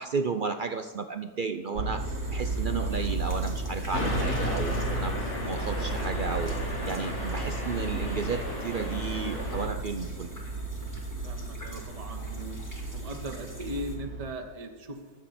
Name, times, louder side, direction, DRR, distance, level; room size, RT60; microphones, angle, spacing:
voice 1, 0.0-6.5 6.9-10.4, right 5 dB, 65° right, 8 dB, 0.5 m, -33 dB
sound 1, 1.8-14.3, right 3 dB, 85° right, 1.7 m, -34 dB
sound 2, 1.9-14.0, equal, 10° left, 2.5 m, -50 dB
sound 3, 3.9-9.7, left 2 dB, 90° left, 3.6 m, -34 dB
voice 2, 11.2-12.6 12.9-15.2, right 1 dB, 25° right, 3 dB, 1.2 m, -39 dB
23.0 x 8.3 x 4.2 m, 1.5 s
omnidirectional pair, 1.6 m